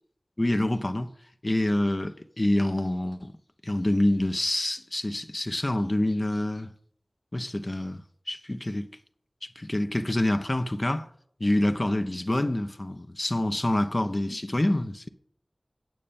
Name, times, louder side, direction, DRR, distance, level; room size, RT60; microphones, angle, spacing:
voice 1, 0.4-1.1 1.4-3.3 3.6-6.7 7.3-8.9 9.6-11.1 11.4-15.1, left 1 dB, 40° left, 0.9 m, -26 dB
9.2 x 7.6 x 7.1 m
wide cardioid pair, 45°, 0 cm